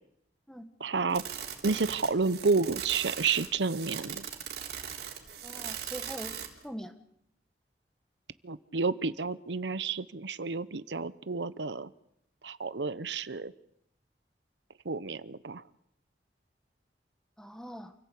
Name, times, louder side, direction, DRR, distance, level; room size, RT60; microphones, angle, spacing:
voice 1, 0.8-1.2 1.6-4.2 8.4-11.9 12.4-13.5 14.8-15.6, right 4 dB, 90° right, 16 dB, 0.8 m, -30 dB
sound 1, 1.1-6.6, right 8 dB, 65° right, 3.7 m, -39 dB
voice 2, 5.4-6.9 17.4-17.9, equal, 5° left, 8 dB, 1.7 m, -43 dB
28.5 x 17.0 x 8.5 m, 0.78 s
head